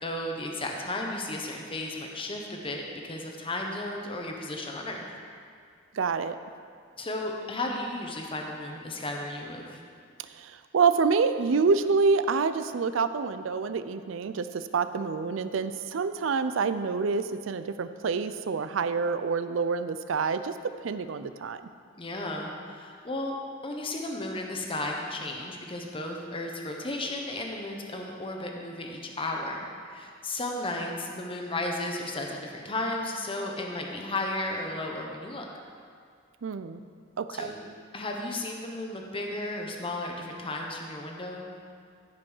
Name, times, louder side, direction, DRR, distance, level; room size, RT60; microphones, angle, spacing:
voice 1, 0.0-5.0 7.0-9.8 22.0-23.3 23.6-35.5 37.3-37.7 37.9-41.5, left 2 dB, 30° left, 1 dB, 1.0 m, -34 dB
voice 2, 5.9-6.4 10.3-21.6 36.4-36.8 37.2-37.5, right 5 dB, 75° right, 11 dB, 0.5 m, -27 dB
14.5 x 5.3 x 5.6 m, 2.2 s
head